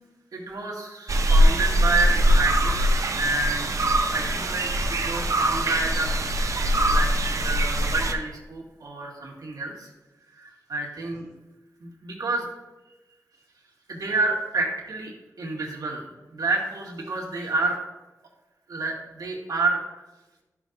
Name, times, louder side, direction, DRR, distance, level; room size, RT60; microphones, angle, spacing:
voice 1, 0.3-2.8 3.1-3.7 4.1-6.2 6.7-7.1 7.4-9.9 10.3-11.3 11.8-12.5 13.9-15.1 15.4-17.8 18.7-19.8, right 3 dB, 80° right, -2 dB, 1.9 m, -29 dB
sound 1, 1.1-8.1, right 1 dB, 60° right, 0.8 m, -22 dB
12.5 x 6.1 x 2.6 m, 1.1 s
wide cardioid pair, 75°, 6 cm